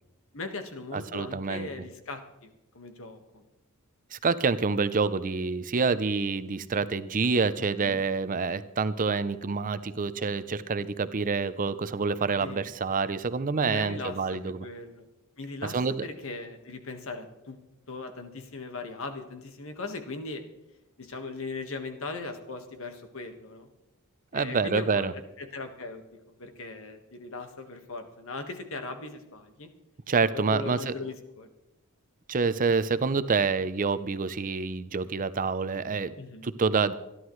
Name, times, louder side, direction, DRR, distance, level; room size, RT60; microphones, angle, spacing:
voice 1, 0.3-3.4 7.6-8.0 12.4-12.7 13.6-15.1 15.4-17.6 17.9-20.4 21.0-23.7 24.3-25.1 25.4-26.0 26.4-29.7 30.3-31.5 36.2-36.5, left 3 dB, 65° left, 6 dB, 1.6 m, -39 dB
voice 2, 0.9-1.7 4.1-14.7 15.7-16.0 24.3-25.1 30.1-30.9 32.3-36.1 36.4-36.9, right 4 dB, 40° right, 14 dB, 0.6 m, -27 dB
26.0 x 11.5 x 3.2 m, 0.94 s
head